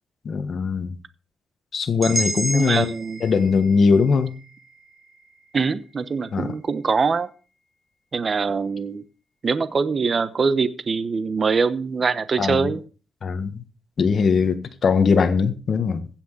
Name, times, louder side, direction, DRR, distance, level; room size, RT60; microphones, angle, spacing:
voice 1, 0.2-0.9 1.7-2.9 3.2-4.3 6.3-6.5 12.4-12.7 13.2-13.6 14.0-16.1, left 5 dB, 50° left, 1.5 m, -20 dB
sound 1, 2.0-6.0, right 2 dB, 20° right, 2.5 m, -32 dB
voice 2, 2.5-3.2 5.5-7.3 8.1-9.0 9.4-12.8, right 5 dB, 40° right, 1.0 m, -23 dB
16.0 x 6.0 x 6.7 m
cardioid pair, 130°, 0 cm